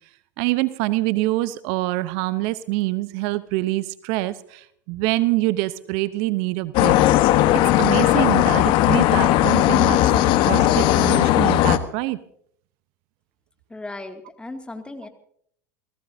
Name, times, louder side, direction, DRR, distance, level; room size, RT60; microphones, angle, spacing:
voice 1, 0.4-7.0 7.8-10.0 10.2-12.2, right 19 dB, 60° right, 16 dB, 0.8 m, -25 dB
sound 1, 6.7-11.8, left 14 dB, 55° left, 1.1 m, -17 dB
voice 2, 13.7-15.1, left 2 dB, 10° left, 5 dB, 2.3 m, -36 dB
30.0 x 17.0 x 2.7 m, 0.66 s
hypercardioid pair, 85°, 10 cm